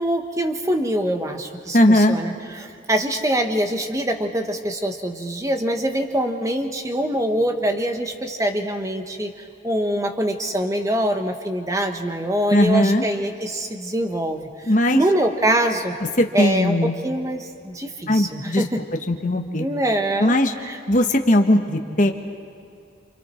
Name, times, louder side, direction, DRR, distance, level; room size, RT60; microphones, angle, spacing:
voice 1, 0.0-9.3 9.6-14.5 14.9-15.9 16.3-18.8 19.6-20.8, right 1 dB, 15° right, 5 dB, 1.2 m, -24 dB
voice 2, 1.7-2.2 12.5-13.0 14.7-15.0 16.2-16.9 18.1-18.6 19.1-19.6 20.2-20.5 20.9-22.1, left 1 dB, 40° left, 3 dB, 1.4 m, -18 dB
28.5 x 27.5 x 4.5 m, 2.4 s
head